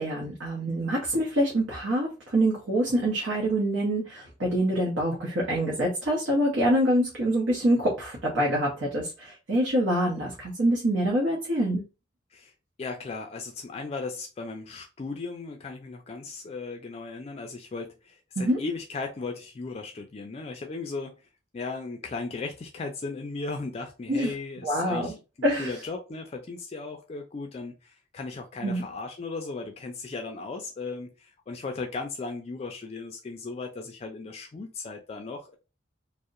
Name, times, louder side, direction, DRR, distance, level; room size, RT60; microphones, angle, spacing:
voice 1, 0.0-11.8 18.4-18.6 24.1-24.3 24.6-25.1 25.4-25.7 28.6-28.8, right 1 dB, 80° right, 0.7 m, -25 dB
voice 2, 12.8-21.1 21.5-25.2 25.6-35.6, left 3 dB, 35° left, 0.3 m, -36 dB
2.7 x 2.0 x 2.4 m
head